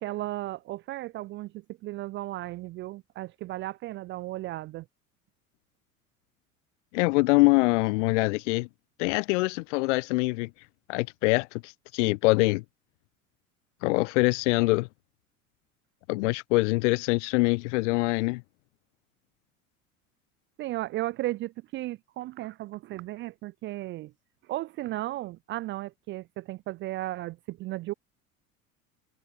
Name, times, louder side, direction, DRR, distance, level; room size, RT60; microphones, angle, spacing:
voice 1, 0.0-4.9 20.6-24.1 24.5-27.9, right 17 dB, 30° right, 0.4 m, -35 dB
voice 2, 6.9-8.7 9.0-10.5 10.9-12.6 13.8-14.9 16.1-18.4, left 24 dB, 55° left, 1.0 m, -24 dB
figure-of-eight pair, 70°, 43 cm